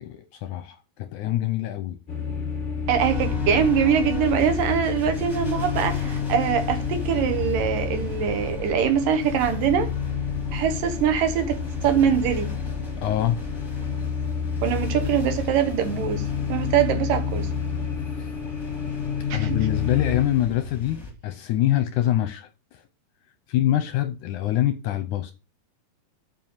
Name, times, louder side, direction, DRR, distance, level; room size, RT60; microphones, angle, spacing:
voice 1, 0.0-2.0 13.0-13.4 18.0-18.3 19.3-22.5 23.5-25.3, left 13 dB, 75° left, 1.9 m, -25 dB
sound 1, 2.1-20.2, left 6 dB, 55° left, 0.5 m, -29 dB
voice 2, 2.9-9.9 10.5-12.5 14.6-17.5 19.3-19.6, right 8 dB, 75° right, 2.8 m, -23 dB
sound 2, 3.0-21.1, left 4 dB, 10° left, 1.3 m, -37 dB
8.3 x 5.0 x 7.3 m
omnidirectional pair, 4.1 m